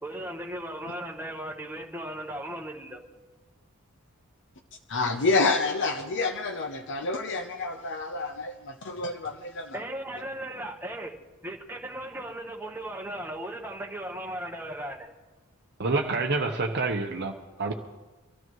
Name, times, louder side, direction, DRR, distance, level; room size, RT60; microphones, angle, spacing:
voice 1, 0.0-3.0 9.7-11.1 11.4-15.1, right 1 dB, 10° right, 1.2 m, -37 dB
voice 2, 4.9-9.8, left 3 dB, 55° left, 0.7 m, -28 dB
voice 3, 15.8-17.3 17.6-17.7, right 3 dB, 50° right, 0.8 m, -27 dB
24.5 x 13.0 x 3.1 m
head